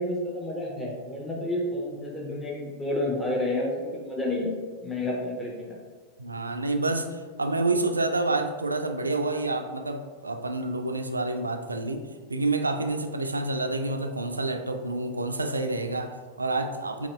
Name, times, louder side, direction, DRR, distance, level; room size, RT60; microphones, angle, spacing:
voice 1, 0.0-4.5 4.8-5.8, left 1 dB, 10° left, -2 dB, 0.8 m, -30 dB
voice 2, 6.2-12.0 12.3-17.1, right 2 dB, 80° right, 6 dB, 0.3 m, -28 dB
4.0 x 2.8 x 3.0 m, 1.5 s
figure-of-eight pair, 90°, 0 cm